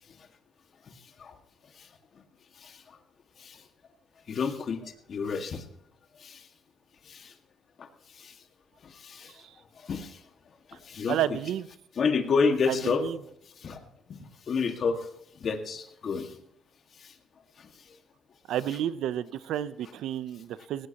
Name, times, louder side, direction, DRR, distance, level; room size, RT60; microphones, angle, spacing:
voice 1, 2.6-3.0 3.4-3.6 4.3-5.6 6.2-6.5 7.0-7.3 7.8-7.9 8.1-8.4 8.8-9.3 9.8-10.2 10.7-11.4 12.0-13.1 13.6-13.8 14.1-14.2 14.5-15.1 15.4-16.4 17.0-17.1 17.6-18.0, left 5 dB, 55° left, 6 dB, 1.9 m, -30 dB
voice 2, 11.1-11.7 12.8-13.2 18.5-20.9, right 11 dB, 75° right, 16 dB, 0.7 m, -31 dB
18.5 x 17.0 x 3.0 m, 0.70 s
supercardioid pair, 75°, 0 cm